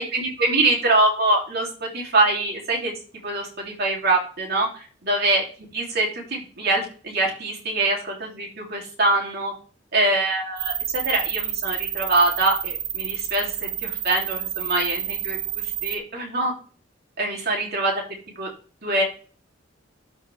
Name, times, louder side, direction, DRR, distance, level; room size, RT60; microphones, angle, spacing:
voice 1, 0.0-2.9 3.2-5.4 5.7-9.5 9.9-16.5 17.2-17.9 18.4-18.5 18.8-19.0, right 2 dB, 55° right, -1 dB, 3.0 m, -24 dB
sound 1, 10.6-16.0, right 13 dB, 75° right, 0.6 m, -29 dB
12.5 x 4.9 x 3.5 m, 0.38 s
head